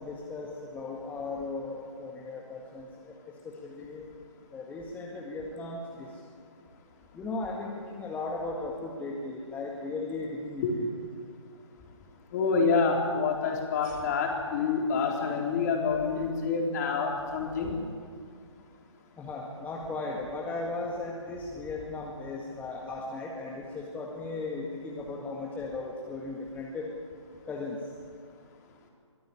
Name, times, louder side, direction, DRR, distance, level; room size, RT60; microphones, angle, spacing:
voice 1, 0.0-2.9 3.4-4.1 4.5-6.1 7.1-10.9 19.2-26.9 27.5-27.8, left 3 dB, 10° left, -2 dB, 1.8 m, -36 dB
voice 2, 12.3-17.7, left 5 dB, 35° left, 1 dB, 4.1 m, -27 dB
23.0 x 15.5 x 9.9 m, 2.1 s
figure-of-eight pair, 140°, 16 cm